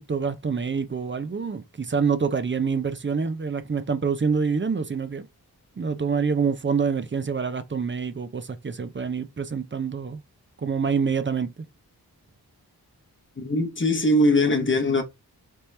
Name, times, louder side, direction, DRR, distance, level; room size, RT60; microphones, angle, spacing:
voice 1, 0.0-5.3 5.8-10.2 10.6-11.5, right 5 dB, 30° right, 0.5 m, -26 dB
voice 2, 13.4-15.0, left 1 dB, 30° left, 0.8 m, -21 dB
3.5 x 2.8 x 3.2 m
wide cardioid pair, 75°, 39 cm